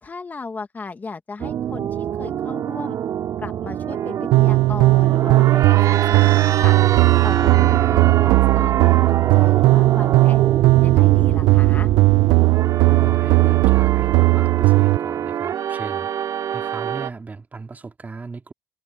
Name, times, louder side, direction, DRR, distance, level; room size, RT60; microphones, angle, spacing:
voice 1, 0.0-3.0 3.4-6.8 7.2-10.5 10.8-11.9, left 4 dB, 25° left, 1.7 m, -36 dB
sound 1, 1.4-17.1, right 9 dB, 55° right, 2.3 m, -25 dB
sound 2, 4.3-15.0, right 21 dB, 85° right, 0.4 m, -16 dB
voice 2, 12.8-18.5, right 4 dB, 25° right, 2.7 m, -36 dB
cardioid pair, 105°, 7 cm